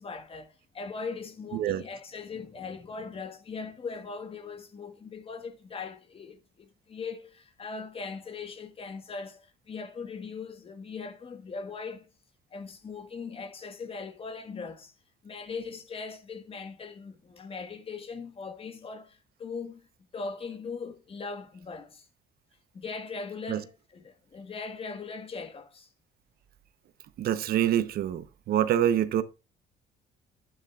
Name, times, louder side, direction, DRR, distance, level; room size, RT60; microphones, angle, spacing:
voice 1, 0.0-12.1 12.5-14.9 15.2-19.9 20.1-22.0 22.7-25.9, left 4 dB, 35° left, 1.5 m, -40 dB
voice 2, 27.2-29.2, right 11 dB, 65° right, 0.8 m, -26 dB
11.5 x 9.5 x 2.4 m
cardioid pair, 110°, 17 cm